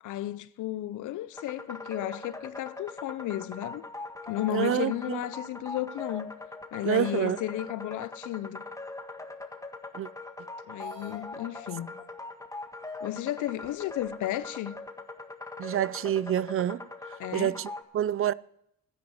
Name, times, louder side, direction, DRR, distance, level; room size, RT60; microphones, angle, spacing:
voice 1, 0.0-3.9 4.3-6.3 6.7-8.6 10.7-12.0 13.0-14.8 17.2-17.5, left 14 dB, 80° left, 0.8 m, -33 dB
sound 1, 1.3-17.8, left 3 dB, 10° left, 1.5 m, -41 dB
voice 2, 4.5-5.2 6.8-7.4 9.9-10.1 15.6-16.9 17.3-18.3, right 11 dB, 45° right, 0.5 m, -28 dB
sound 2, 10.8-11.2 12.2-12.3 12.9-13.0 13.6-14.3, right 4 dB, 90° right, 3.9 m, -52 dB
12.5 x 10.5 x 7.7 m
cardioid pair, 90°, 30 cm